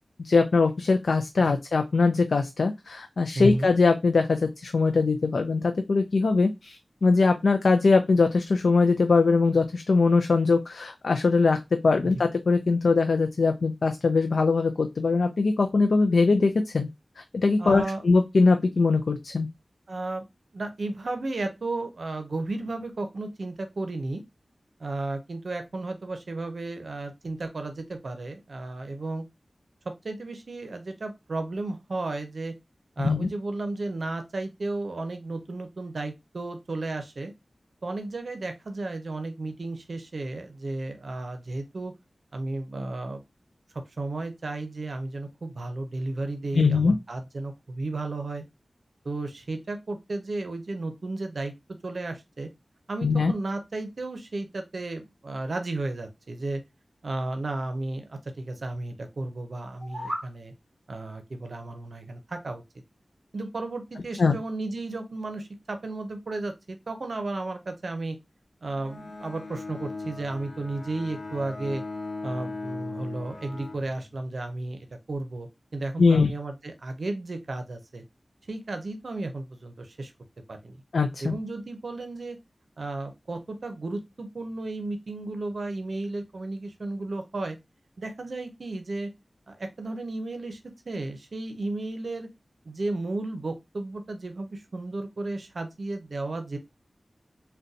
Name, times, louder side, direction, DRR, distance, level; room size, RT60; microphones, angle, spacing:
voice 1, 0.2-11.6 11.8-16.9 17.3-19.5 33.0-33.3 46.5-47.0 53.0-53.3 64.2-64.4 76.0-76.3 80.9-81.3, left 4 dB, 85° left, 6 dB, 0.3 m, -22 dB
voice 2, 3.3-3.7 17.6-18.0 19.9-20.2 20.5-24.2 24.8-29.2 30.0-32.5 33.0-37.3 37.8-41.9 42.3-43.2 44.0-48.4 49.0-51.5 51.8-52.5 52.9-56.6 57.0-60.5 60.9-62.6 63.3-68.2 68.6-71.8 72.2-74.8 75.1-78.0 78.5-80.1 80.5-80.8 81.2-82.4 82.8-87.6 88.0-89.1 89.5-90.6 90.9-92.3 92.7-96.6, right 2 dB, 75° right, 6 dB, 0.6 m, -33 dB
sound 1, 59.6-60.3, equal, 5° right, 2.0 m, -35 dB
Bowed string instrument, 68.7-74.5, left 3 dB, 55° left, 0.8 m, -38 dB
3.9 x 2.2 x 2.6 m, 0.21 s
cardioid pair, 45°, 0 cm